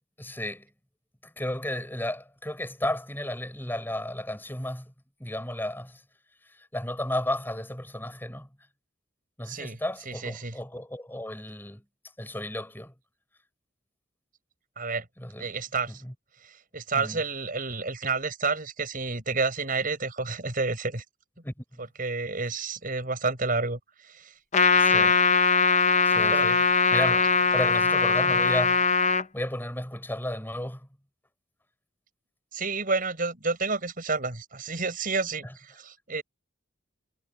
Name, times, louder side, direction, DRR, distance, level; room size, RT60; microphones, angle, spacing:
voice 1, 0.2-0.7 1.2-4.9 5.2-6.0 6.4-8.5 9.4-11.8 12.2-12.9 15.2-15.5 15.9-16.1 16.9-17.2 21.4-21.8 24.8-25.2 26.0-28.9 29.3-30.9, left 1 dB, 10° left, 5.7 m, -33 dB
voice 2, 9.5-9.8 10.1-10.5 14.8-15.1 15.4-16.0 16.4-21.0 22.0-24.3 26.3-26.5 32.5-36.2, right 4 dB, 45° right, 6.7 m, -30 dB
Trumpet, 24.5-29.2, left 4 dB, 35° left, 0.8 m, -21 dB
head